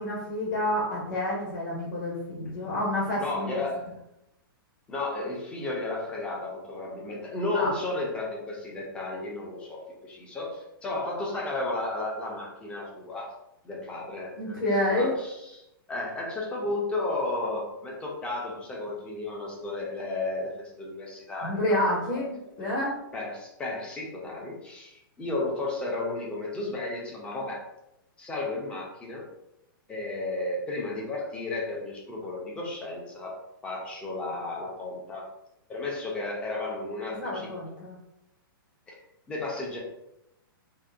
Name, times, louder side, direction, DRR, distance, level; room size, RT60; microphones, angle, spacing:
voice 1, 0.0-3.6 7.5-7.7 14.4-15.1 21.4-23.0 37.1-38.0, left 1 dB, 50° left, -5 dB, 0.9 m, -28 dB
voice 2, 3.2-3.8 4.9-13.3 13.6-15.6 15.9-20.5 20.8-21.9 23.1-24.9 25.2-27.6 28.2-29.3 29.9-35.2 35.7-37.5 38.9-39.0 39.3-39.8, left 2 dB, 10° left, -2 dB, 0.4 m, -33 dB
2.7 x 2.1 x 2.3 m, 0.84 s
hypercardioid pair, 160°, 12 cm